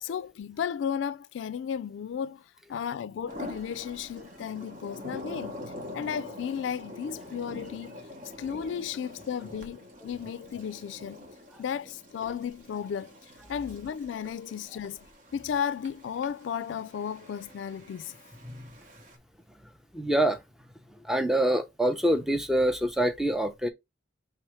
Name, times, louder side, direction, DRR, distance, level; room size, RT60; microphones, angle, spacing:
voice 1, 0.0-2.4 2.7-5.6 5.9-8.0 8.4-11.3 11.6-15.1 15.3-18.1, left 8 dB, 85° left, 0.3 m, -34 dB
sound 1, 3.3-19.2, left 1 dB, 45° right, 1.1 m, -45 dB
voice 2, 19.9-20.4 21.0-23.7, right 1 dB, ahead, 0.6 m, -25 dB
4.8 x 3.4 x 3.0 m
head